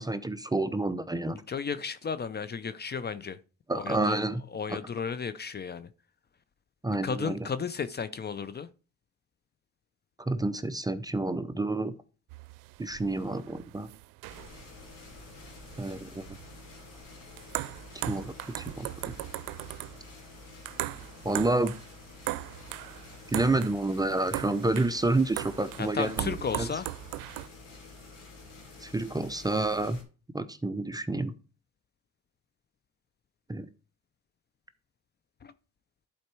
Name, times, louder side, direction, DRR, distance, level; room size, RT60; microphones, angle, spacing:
voice 1, 0.0-1.4 3.7-4.4 4.7-4.8 6.8-7.4 10.2-11.9 12.8-13.9 15.8-16.3 18.1-19.1 21.2-21.7 23.3-26.7 28.8-30.0 30.3-31.3 33.5-33.7, right 2 dB, 10° right, 0.6 m, -29 dB
voice 2, 1.3-3.4 3.7-4.2 4.5-5.9 7.0-8.7 25.8-26.9 35.4-35.5, left 6 dB, 30° left, 0.6 m, -34 dB
sound 1, 12.3-27.5, right 17 dB, 85° right, 0.5 m, -39 dB
sound 2, 14.3-30.0, left 3 dB, 85° left, 2.7 m, -49 dB
11.0 x 4.3 x 4.6 m
cardioid pair, 85°, 32 cm